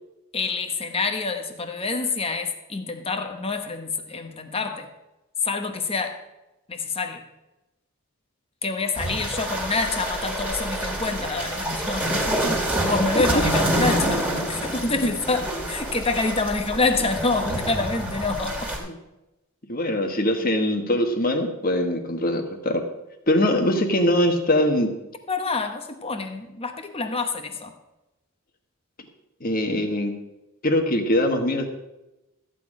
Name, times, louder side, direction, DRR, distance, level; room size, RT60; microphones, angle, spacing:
voice 1, 0.3-4.9 5.4-6.2 6.7-7.2 8.6-18.7 25.3-27.7, left 3 dB, 25° left, 6 dB, 1.1 m, -27 dB
sound 1, 8.9-18.8, right 1 dB, 5° right, 2.1 m, -27 dB
voice 2, 19.7-22.8 23.3-24.9 29.4-30.1 30.6-31.7, left 1 dB, 40° left, 6 dB, 1.4 m, -22 dB
14.0 x 8.8 x 4.9 m, 0.99 s
head